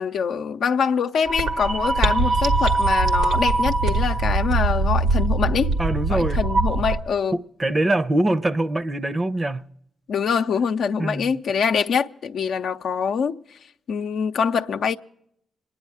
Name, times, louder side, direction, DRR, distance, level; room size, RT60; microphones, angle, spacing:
voice 1, 0.0-5.7 6.1-7.4 10.1-13.4 13.9-15.0, left 6 dB, 70° left, 0.6 m, -24 dB
sound 1, 1.2-7.0, right 3 dB, 80° right, 1.4 m, -21 dB
voice 2, 5.8-6.4 7.3-9.7 11.0-11.3, right 1 dB, 30° right, 0.7 m, -23 dB
26.0 x 10.0 x 4.8 m
supercardioid pair, 50°, 0 cm